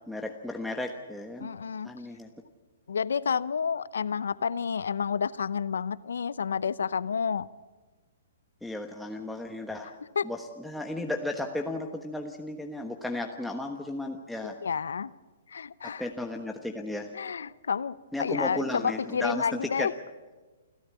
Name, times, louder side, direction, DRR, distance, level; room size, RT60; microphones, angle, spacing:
voice 1, 0.1-1.5 1.8-2.3 8.6-9.9 10.2-14.5 15.8-17.1 18.1-19.9, left 2 dB, ahead, 2 dB, 1.3 m, -34 dB
voice 2, 1.4-1.9 2.9-7.5 10.2-10.3 14.4-15.1 15.5-16.1 17.1-19.9, left 6 dB, 75° left, 19 dB, 0.7 m, -30 dB
28.5 x 13.0 x 8.4 m, 1.3 s
hypercardioid pair, 130°, 0 cm